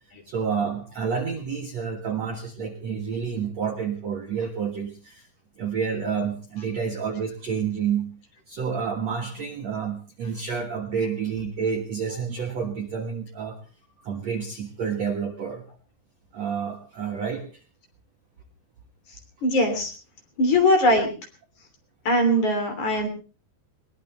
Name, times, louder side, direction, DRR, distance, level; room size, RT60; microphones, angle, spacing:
voice 1, 0.3-5.3 5.6-8.1 8.5-13.6 14.0-15.6 16.3-17.6, right 6 dB, 55° right, 3 dB, 2.0 m, -29 dB
voice 2, 19.4-19.9 20.4-21.1 22.1-23.1, left 1 dB, 45° left, 5 dB, 4.2 m, -20 dB
21.5 x 20.0 x 3.4 m, 0.36 s
omnidirectional pair, 5.0 m